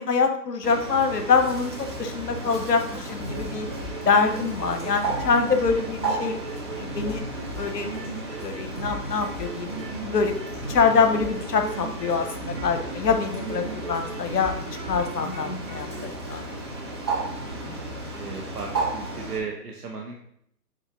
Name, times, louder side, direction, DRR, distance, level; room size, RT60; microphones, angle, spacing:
voice 1, 0.0-3.7 4.0-6.4 6.8-7.2 7.6-7.9 8.4-9.7 10.0-14.5 14.9-16.5, left 5 dB, 70° left, 7 dB, 0.9 m, -25 dB
Bird, 0.6-19.4, right 2 dB, 15° right, 0.5 m, -34 dB
sound 1, 3.1-16.0, right 2 dB, 35° right, 2.4 m, -37 dB
voice 2, 17.4-17.8 18.2-20.2, right 5 dB, 65° right, 0 dB, 1.1 m, -36 dB
6.8 x 4.3 x 3.5 m, 0.69 s
figure-of-eight pair, 130°, 49 cm